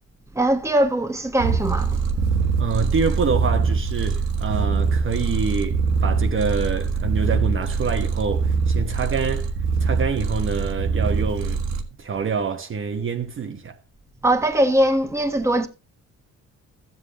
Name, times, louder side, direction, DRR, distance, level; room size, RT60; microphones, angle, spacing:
voice 1, 0.3-2.0 14.2-15.7, right 1 dB, 10° right, 1.3 m, -21 dB
Purr, 1.4-11.8, right 5 dB, 80° right, 1.6 m, -23 dB
voice 2, 2.6-9.5 9.8-11.6 12.0-13.8, right 5 dB, 40° right, 1.0 m, -26 dB
13.5 x 7.9 x 3.2 m
cardioid pair, 90°, 30 cm